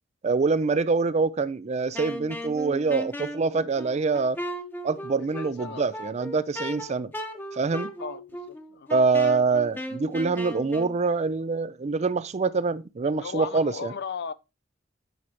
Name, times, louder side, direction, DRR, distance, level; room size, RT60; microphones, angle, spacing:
voice 1, 0.2-4.4 4.8-7.1 7.5-7.9 8.9-13.9, right 4 dB, 35° right, 0.4 m, -25 dB
Wind instrument woodwind instrument, 1.9-10.9, equal, 10° left, 0.9 m, -37 dB
voice 2, 5.4-5.9 8.0-8.9 13.0-14.3, left 6 dB, 60° left, 0.5 m, -37 dB
9.3 x 6.4 x 2.9 m
head